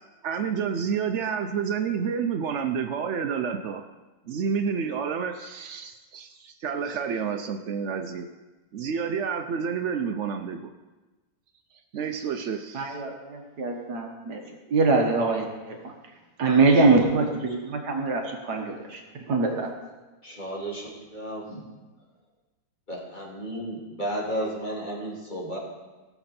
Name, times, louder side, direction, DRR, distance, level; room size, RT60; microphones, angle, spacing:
voice 1, 0.2-3.8 4.3-8.3 8.7-10.7 11.9-13.0, right 6 dB, 90° right, 6 dB, 0.6 m, -29 dB
voice 2, 12.7-14.4 14.7-15.9 16.4-19.0 19.3-19.7, right 3 dB, 60° right, 2 dB, 1.7 m, -23 dB
voice 3, 20.2-21.6 22.9-25.6, equal, 25° left, -4 dB, 2.5 m, -33 dB
16.5 x 7.1 x 4.3 m, 1.2 s
omnidirectional pair, 2.0 m